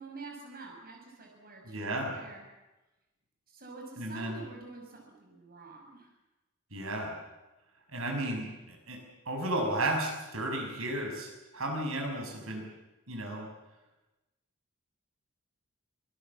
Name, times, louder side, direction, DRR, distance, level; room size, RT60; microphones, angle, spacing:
voice 1, 0.0-2.4 3.5-6.1, right 3 dB, 45° right, 1 dB, 6.2 m, -47 dB
voice 2, 1.6-2.1 4.0-4.4 6.7-7.1 7.9-9.0 9.2-12.7 13.1-13.5, right 1 dB, 70° right, 2 dB, 6.6 m, -33 dB
25.5 x 20.5 x 7.4 m, 1.1 s
head